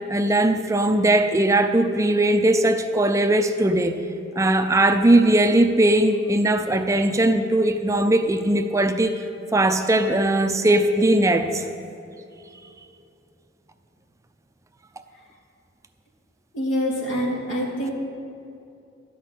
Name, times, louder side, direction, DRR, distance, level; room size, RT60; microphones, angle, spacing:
voice 1, 0.0-4.0 4.4-9.1 9.5-11.7, right 1 dB, 15° right, 7 dB, 0.5 m, -19 dB
voice 2, 16.5-17.9, equal, 90° left, -3 dB, 2.6 m, -25 dB
12.5 x 6.0 x 8.2 m, 2.6 s
head